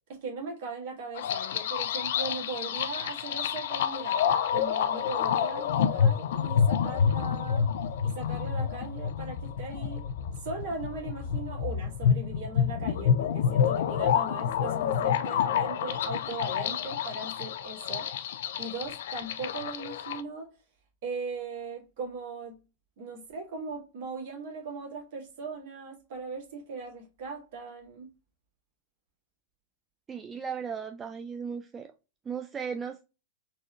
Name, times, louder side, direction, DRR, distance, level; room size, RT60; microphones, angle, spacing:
voice 1, 0.1-7.7 8.0-10.1 10.4-18.3 18.6-20.5 21.0-22.6 23.0-28.1, right 3 dB, 55° right, 1.8 m, -39 dB
sound 1, 1.2-20.2, left 8 dB, 60° left, 0.4 m, -28 dB
voice 2, 30.1-31.9 32.3-33.0, right 6 dB, 20° right, 0.3 m, -36 dB
4.0 x 2.9 x 2.4 m
figure-of-eight pair, 95°, 0 cm